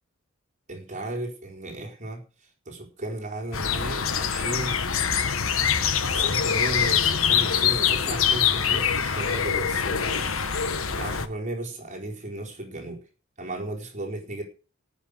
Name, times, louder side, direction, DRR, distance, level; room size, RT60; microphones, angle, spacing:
voice 1, 0.7-2.2 2.7-5.0 6.1-10.3 10.9-13.0 13.4-14.4, right 1 dB, 35° right, 0 dB, 4.6 m, -35 dB
sound 1, 3.5-11.3, left 7 dB, 90° left, 1.3 m, -24 dB
18.0 x 6.7 x 6.9 m, 0.35 s
head